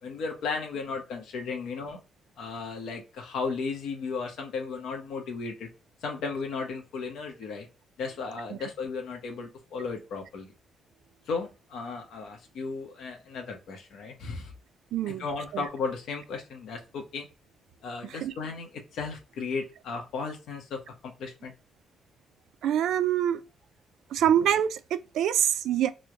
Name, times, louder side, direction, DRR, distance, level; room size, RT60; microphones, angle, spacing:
voice 1, 0.0-2.0 2.4-5.7 6.0-7.7 8.0-10.5 11.3-14.5 15.1-17.3 17.8-21.5, left 4 dB, 75° left, 0.8 m, -35 dB
voice 2, 14.9-15.2 15.5-15.6 18.2-18.3 22.6-23.4 24.1-25.9, right 10 dB, 85° right, 0.3 m, -25 dB
3.1 x 2.1 x 3.6 m
cardioid pair, 175°, 0 cm